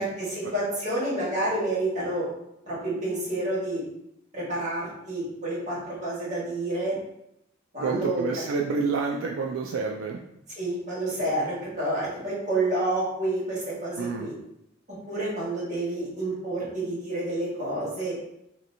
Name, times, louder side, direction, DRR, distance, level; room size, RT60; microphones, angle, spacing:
voice 1, 0.0-2.3 2.7-3.8 4.3-7.0 7.7-8.2 10.6-14.3 15.1-18.2, right 1 dB, 35° right, -8 dB, 1.4 m, -29 dB
voice 2, 7.8-10.2 14.0-14.3, right 4 dB, 75° right, 0 dB, 0.3 m, -28 dB
3.1 x 2.9 x 2.6 m, 0.81 s
head